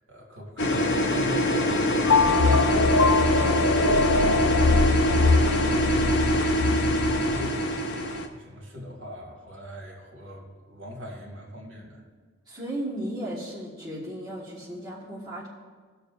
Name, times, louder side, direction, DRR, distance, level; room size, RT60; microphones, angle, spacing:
voice 1, 0.1-4.0 5.9-7.8 8.4-12.0, equal, 70° right, -3 dB, 2.4 m, -41 dB
sound 1, 0.6-8.3, equal, 55° left, 0.9 m, -24 dB
sound 2, 2.1-7.5, left 4 dB, 85° left, 0.5 m, -23 dB
voice 2, 12.5-15.5, right 1 dB, 20° right, -8 dB, 1.7 m, -35 dB
19.5 x 6.8 x 2.7 m, 1.5 s
head